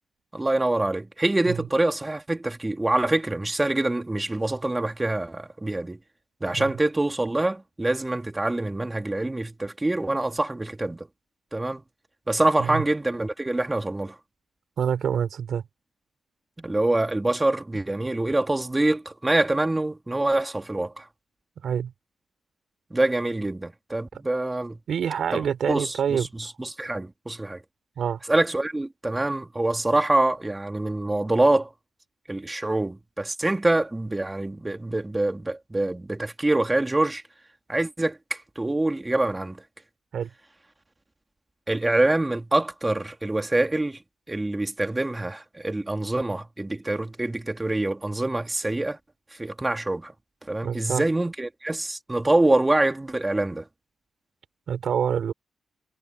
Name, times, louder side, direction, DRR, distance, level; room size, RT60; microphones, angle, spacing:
voice 1, 0.3-6.0 6.4-11.1 11.5-11.8 12.3-14.1 16.6-21.0 22.9-24.8 25.3-27.6 28.3-31.7 32.3-37.2 37.7-39.6 41.7-44.0 44.3-49.0 49.4-50.1 50.5-53.7, right 2 dB, 20° right, 2.8 m, -25 dB
voice 2, 14.8-15.6 21.6-21.9 24.9-26.3 28.0-28.2 40.1-40.3 50.6-51.0 54.7-55.3, right 8 dB, 75° right, 4.2 m, -26 dB
cardioid pair, 65°, 0 cm